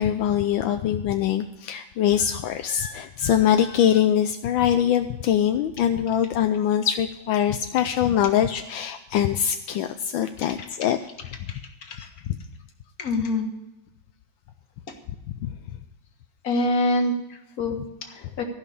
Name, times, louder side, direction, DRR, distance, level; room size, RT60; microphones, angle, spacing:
voice 1, 0.0-11.0 11.9-12.0 15.4-15.5, left 10 dB, 80° left, 7 dB, 1.4 m, -23 dB
voice 2, 10.6-10.9 11.5-12.1 13.0-13.5 14.9-15.0 16.4-18.4, left 2 dB, 50° left, 4 dB, 1.9 m, -27 dB
15.0 x 5.7 x 8.3 m, 0.96 s
omnidirectional pair, 2.1 m